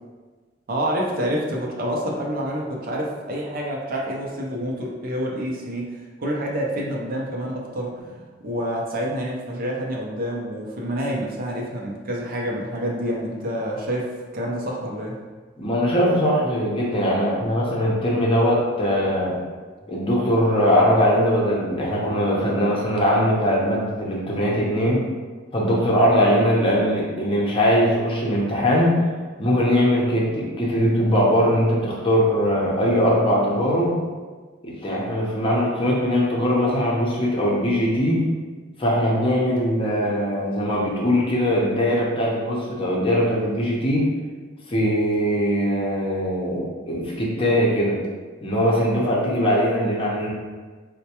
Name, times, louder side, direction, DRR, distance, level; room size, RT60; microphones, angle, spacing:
voice 1, 0.7-8.0 8.4-15.2, equal, 50° right, -2 dB, 0.6 m, -28 dB
voice 2, 15.6-19.4 19.9-25.1 25.5-29.0 29.4-34.0 34.6-38.3 38.8-44.1 44.7-48.0 48.4-50.3, equal, 30° left, -4 dB, 0.6 m, -21 dB
4.3 x 2.1 x 2.8 m, 1.4 s
head